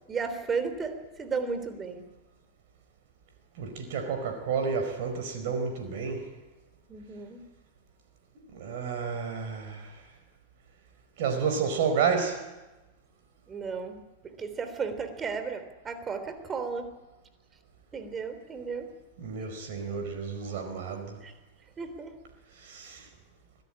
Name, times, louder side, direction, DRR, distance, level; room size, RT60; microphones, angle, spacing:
voice 1, 0.1-2.1 6.9-7.4 13.5-16.9 17.9-18.9 21.2-21.3 21.8-22.1, right 5 dB, 20° right, 10 dB, 3.5 m, -34 dB
voice 2, 3.6-6.3 8.5-9.9 11.2-12.4 19.2-21.2 22.6-23.0, right 6 dB, 50° right, 5 dB, 4.7 m, -30 dB
24.5 x 17.5 x 10.0 m, 1.1 s
figure-of-eight pair, 90°, 0 cm